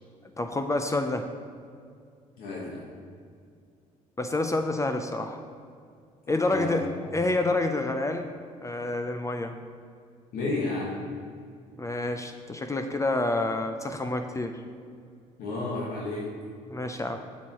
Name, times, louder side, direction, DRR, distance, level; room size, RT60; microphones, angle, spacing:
voice 1, 0.4-1.3 4.2-5.4 6.3-6.9 7.1-8.3 8.6-9.5 11.8-14.5 16.7-17.2, left 2 dB, 20° left, 5 dB, 0.5 m, -28 dB
voice 2, 2.4-2.9 6.3-6.8 10.3-11.0 15.4-16.3, left 2 dB, 75° left, -5 dB, 1.2 m, -32 dB
8.1 x 6.2 x 3.0 m, 2.2 s
supercardioid pair, 70°, 15 cm